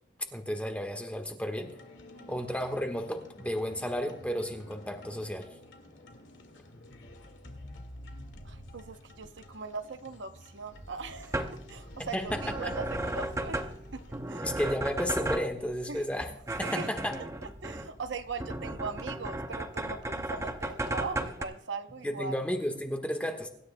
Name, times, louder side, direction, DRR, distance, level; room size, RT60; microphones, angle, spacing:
voice 1, 0.3-1.7 2.3-5.5 12.0-12.4 14.4-16.3 16.6-17.2 22.0-23.5, equal, 5° left, 1.3 m, -33 dB
sound 1, 1.6-14.7, left 1 dB, 70° left, 1.9 m, -50 dB
voice 2, 2.1-2.5 8.4-11.4 11.7-14.5 15.9-16.0 16.6-16.9 17.4-22.5, right 4 dB, 65° right, 0.8 m, -40 dB
sound 2, 10.7-21.4, right 1 dB, 15° right, 0.7 m, -36 dB
24.5 x 12.5 x 2.2 m
head